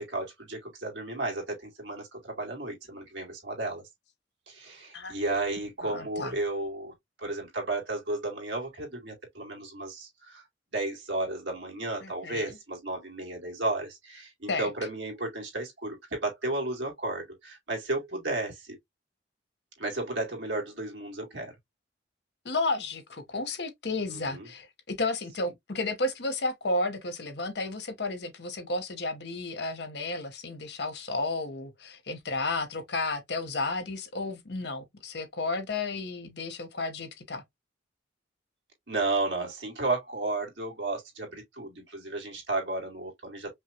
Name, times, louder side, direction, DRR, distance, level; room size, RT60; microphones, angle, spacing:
voice 1, 0.0-3.8 4.5-10.4 10.7-18.8 19.8-21.5 24.1-24.5 38.9-43.5, right 2 dB, 70° right, 2.2 m, -33 dB
voice 2, 5.8-6.3 12.0-12.5 14.5-14.7 22.4-37.4, left 2 dB, 60° left, 0.9 m, -32 dB
5.3 x 2.3 x 2.8 m
head